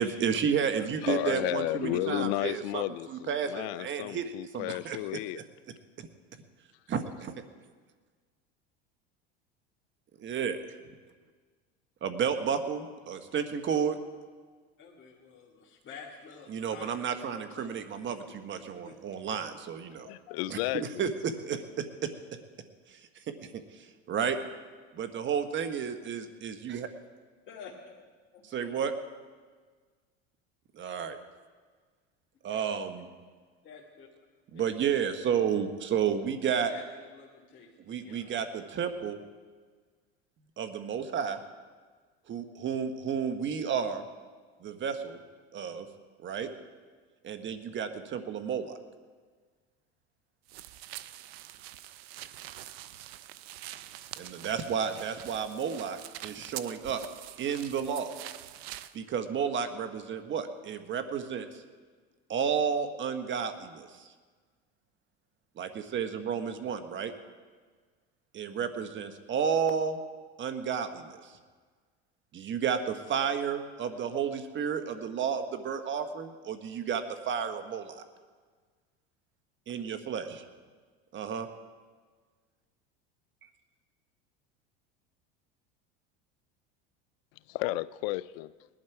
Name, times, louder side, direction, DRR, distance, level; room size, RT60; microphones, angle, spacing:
voice 1, 0.0-2.8 3.1-5.0 5.3-5.4 6.0-6.1 6.9-7.3 10.2-10.6 12.0-14.0 16.5-20.1 20.5-22.1 22.9-23.0 23.3-23.4 23.8-24.4 24.9-26.9 28.4-28.9 30.7-31.2 32.4-33.1 34.5-36.7 37.9-39.2 40.6-41.4 42.3-44.0 44.6-45.2 45.5-45.9 46.2-46.5 47.2-48.8 54.2-57.0 57.4-58.1 58.9-61.5 62.3-64.1 65.6-67.1 68.3-70.0 70.4-71.3 72.3-78.0 79.7-80.4 81.1-81.5, right 7 dB, 40° right, 8 dB, 1.4 m, -32 dB
voice 2, 0.7-5.4 20.1-21.1 87.5-88.5, left 17 dB, 70° left, 18 dB, 0.6 m, -33 dB
voice 3, 14.8-16.9 17.2-17.7 18.5-19.2 27.5-27.9 28.3-28.7 32.5-32.6 33.6-34.1 34.5-34.7 36.7-38.3, left 5 dB, 40° left, -4 dB, 2.4 m, -50 dB
sound 1, 50.5-58.9, right 14 dB, 80° right, 0.7 m, -45 dB
19.5 x 11.5 x 4.7 m, 1.5 s
supercardioid pair, 100°, 31 cm